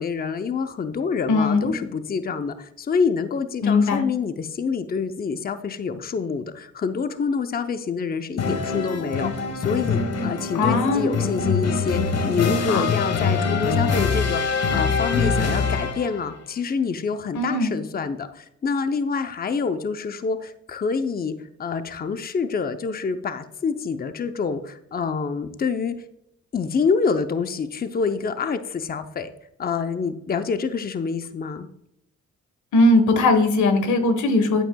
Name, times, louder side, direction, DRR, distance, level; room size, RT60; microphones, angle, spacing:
voice 1, 0.0-21.3 21.6-25.9 26.5-29.3 29.6-31.7, left 5 dB, 30° left, 9 dB, 0.7 m, -27 dB
voice 2, 1.3-1.7 3.6-4.1 10.5-11.1 12.7-12.8 17.3-17.7 32.7-34.6, left 2 dB, 85° left, 8 dB, 1.3 m, -19 dB
sound 1, 8.4-16.2, left 4 dB, 60° left, 1.4 m, -24 dB
10.0 x 8.7 x 2.3 m, 0.79 s
cardioid pair, 80°, 29 cm